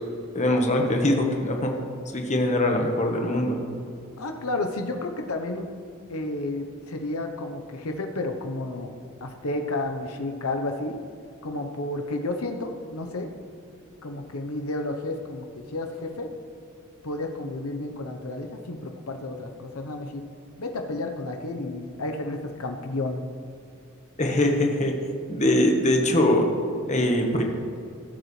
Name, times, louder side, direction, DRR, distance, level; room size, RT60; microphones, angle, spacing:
voice 1, 0.3-1.7 2.1-3.6 24.2-24.9 25.3-26.5 26.9-27.4, left 1 dB, 35° left, 2 dB, 1.3 m, -22 dB
voice 2, 4.2-5.7 6.1-8.9 9.2-11.0 11.4-13.3 14.0-16.3 17.0-20.2 20.6-23.2, left 2 dB, 90° left, 5 dB, 0.9 m, -31 dB
17.0 x 7.8 x 3.3 m, 2.5 s
head